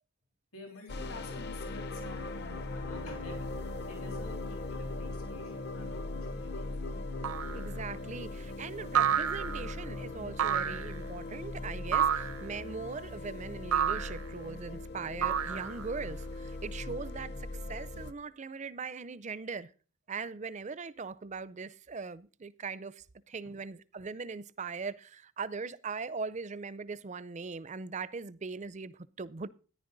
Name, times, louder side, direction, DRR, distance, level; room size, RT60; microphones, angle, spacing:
voice 1, 0.5-3.5 3.9-6.7 23.4-23.6, left 2 dB, 75° left, 3.3 m, -49 dB
sound 1, 0.9-18.1, left 2 dB, 45° left, 0.7 m, -39 dB
sound 2, 7.2-7.7 8.9-9.7 10.4-11.0 11.9-12.5 13.7-14.2 15.2-16.0, right 8 dB, 80° right, 0.8 m, -29 dB
voice 2, 7.5-19.7 20.1-29.5, right 4 dB, 30° right, 0.4 m, -40 dB
14.0 x 10.0 x 3.9 m
head